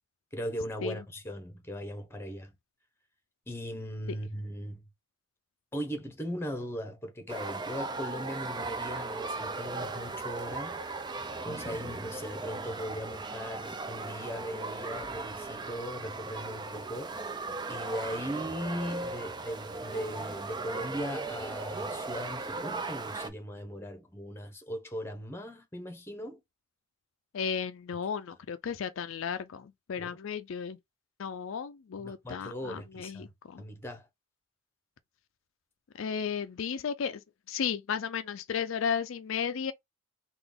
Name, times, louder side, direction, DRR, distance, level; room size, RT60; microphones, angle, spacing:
voice 1, 0.3-2.5 3.5-4.8 5.7-10.8 11.4-17.2 17.7-26.4 30.0-30.2 32.0-33.3 33.6-34.1, equal, 10° left, 1.0 m, -38 dB
sound 1, 7.3-23.3, right 3 dB, 20° right, 0.4 m, -37 dB
voice 2, 27.3-30.8 31.2-33.6 36.0-37.2 37.5-39.7, left 7 dB, 70° left, 0.4 m, -34 dB
3.9 x 2.5 x 3.5 m
head